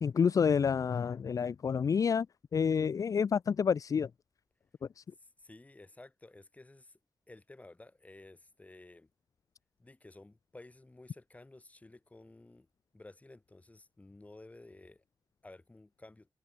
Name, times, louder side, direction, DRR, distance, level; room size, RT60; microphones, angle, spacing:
voice 1, 0.0-2.3 2.5-4.1, left 6 dB, 45° left, 0.4 m, -28 dB
voice 2, 5.2-7.0 7.3-9.1 9.8-12.7 12.9-15.0 15.4-16.3, left 2 dB, 20° left, 8.0 m, -54 dB
wide cardioid pair, 155°, 8 cm